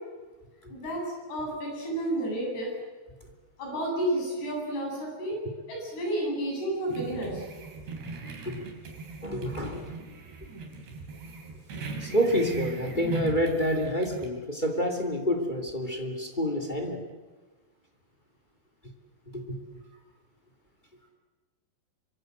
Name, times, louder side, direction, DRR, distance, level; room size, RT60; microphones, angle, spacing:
voice 1, 0.7-1.0 1.3-2.7 3.6-5.4 5.7-7.4, right 1 dB, 65° left, -1 dB, 10.0 m, -31 dB
sound 1, 6.9-14.3, right 3 dB, 75° right, 5.4 m, -38 dB
voice 2, 9.2-9.9 12.0-17.0 19.3-19.6, equal, 15° left, 3 dB, 2.0 m, -28 dB
26.0 x 24.5 x 8.0 m, 1.3 s
omnidirectional pair, 5.0 m